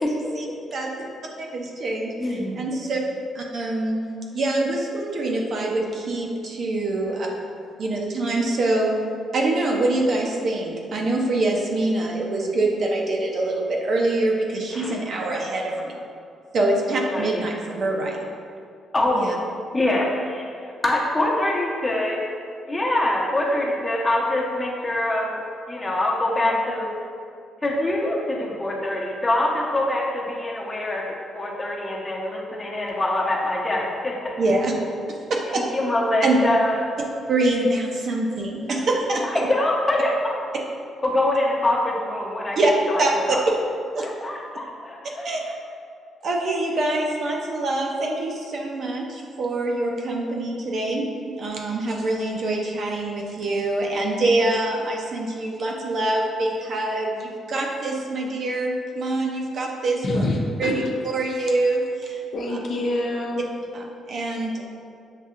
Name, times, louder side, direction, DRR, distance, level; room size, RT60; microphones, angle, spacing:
voice 1, 0.1-0.5 0.7-0.9 1.4-3.0 3.3-4.0 4.3-7.3 7.8-8.9 9.3-15.9 16.5-18.2 19.1-19.3 34.4-34.7 35.1-35.6 36.2-36.4 37.3-39.5 42.6-42.7 43.0-43.4 43.9-44.1 45.2-45.4 46.2-60.2 60.6-60.8 61.1-62.2 63.7-64.6, right 2 dB, 55° right, -1 dB, 0.6 m, -25 dB
voice 2, 2.2-2.6 6.9-7.0 14.7-14.9 17.1-17.4 18.9-19.4 19.7-20.5 20.8-22.2 22.7-25.4 25.7-26.9 27.6-34.3 35.5-36.8 39.2-40.3 41.0-42.6 42.9-43.4 44.0-45.5, left 1 dB, 25° left, -2 dB, 0.8 m, -24 dB
voice 3, 60.0-60.7 62.3-63.4, left 1 dB, 55° left, 0 dB, 0.6 m, -25 dB
6.4 x 2.7 x 2.5 m, 2.3 s
cardioid pair, 90°, 0 cm